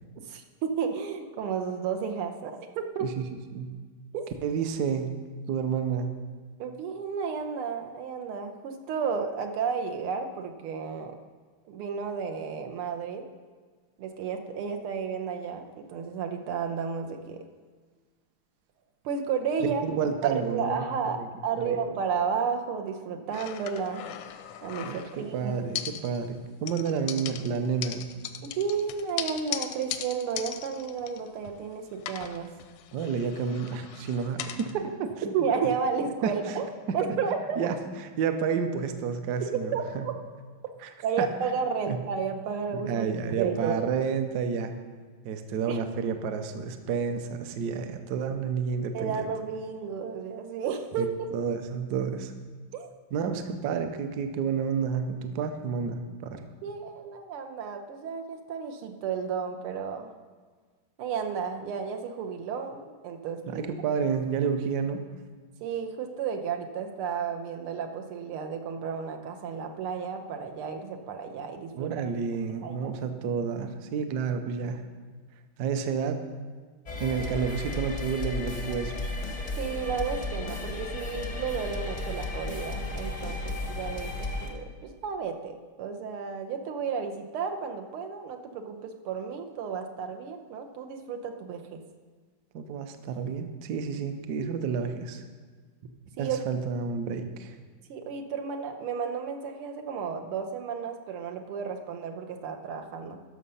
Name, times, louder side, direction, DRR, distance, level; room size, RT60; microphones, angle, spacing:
voice 1, 0.2-3.1 4.1-4.3 6.6-11.1 11.7-13.2 14.0-17.4 19.0-19.8 20.2-24.1 24.6-25.5 28.4-32.5 35.3-37.7 39.5-40.1 41.0-43.1 43.4-43.8 45.7-45.8 48.9-51.1 52.7-52.9 56.6-60.1 61.0-63.6 65.6-72.1 72.6-72.9 79.6-91.8 96.2-96.4 97.9-103.2, right 6 dB, 85° right, 4 dB, 1.8 m, -32 dB
voice 2, 4.4-5.1 5.5-6.1 19.6-20.9 21.2-21.3 21.6-21.8 24.9-28.1 32.9-35.3 36.2-36.3 37.6-37.8 38.2-40.1 40.8-40.9 41.2-41.3 41.9-42.0 42.7-44.7 45.2-49.2 51.0-51.1 51.3-52.3 53.1-56.4 63.5-65.0 71.7-74.8 75.6-76.2 77.0-79.1 92.5-95.2 96.2-97.6, right 6 dB, 65° right, 7 dB, 1.1 m, -30 dB
sound 1, 23.3-25.3 25.7-26.4 26.7-31.7 32.0-34.7, left 10 dB, 85° left, 1.6 m, -38 dB
sound 2, 76.9-84.5, left 2 dB, 45° left, 0.4 m, -34 dB
12.5 x 6.3 x 5.5 m, 1.5 s
omnidirectional pair, 2.4 m